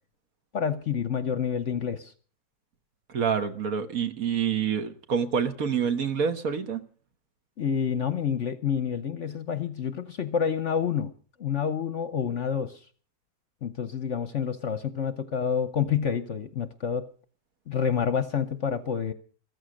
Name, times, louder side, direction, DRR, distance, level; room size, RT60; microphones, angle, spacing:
voice 1, 0.5-2.1 7.6-11.1 11.4-12.8 13.6-17.1 17.7-19.1, left 7 dB, 50° left, 1.0 m, -28 dB
voice 2, 3.1-6.8, right 7 dB, 55° right, 1.5 m, -27 dB
14.5 x 14.5 x 6.4 m
omnidirectional pair, 1.9 m